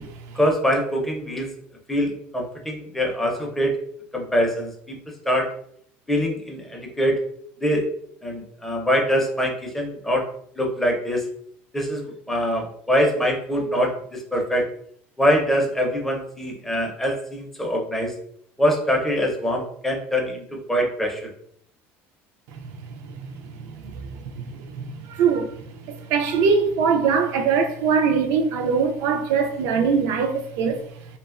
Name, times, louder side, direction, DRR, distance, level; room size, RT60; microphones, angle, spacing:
voice 1, 0.4-1.5 1.9-3.7 4.1-5.0 5.3-5.5 6.1-7.2 7.6-7.8 8.2-10.3 10.6-11.3 11.7-14.6 15.2-18.1 18.6-21.3, equal, 5° left, 0.5 m, -23 dB
voice 2, 24.8-25.5 25.9-30.8, right 5 dB, 65° right, 0.3 m, -21 dB
2.8 x 2.1 x 2.3 m
cardioid pair, 160°, 5 cm